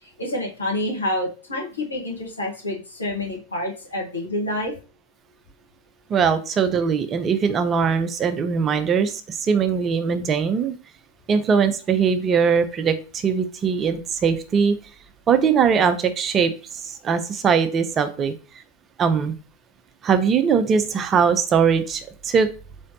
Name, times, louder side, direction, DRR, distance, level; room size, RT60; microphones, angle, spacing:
voice 1, 0.0-4.7, left 1 dB, 80° left, -3 dB, 1.3 m, -28 dB
voice 2, 6.1-10.8 11.3-14.8 15.3-16.5 16.8-18.3 19.0-19.3 20.0-22.5, right 6 dB, 25° right, 9 dB, 0.4 m, -21 dB
3.8 x 3.1 x 2.8 m, 0.35 s
figure-of-eight pair, 90°, 0 cm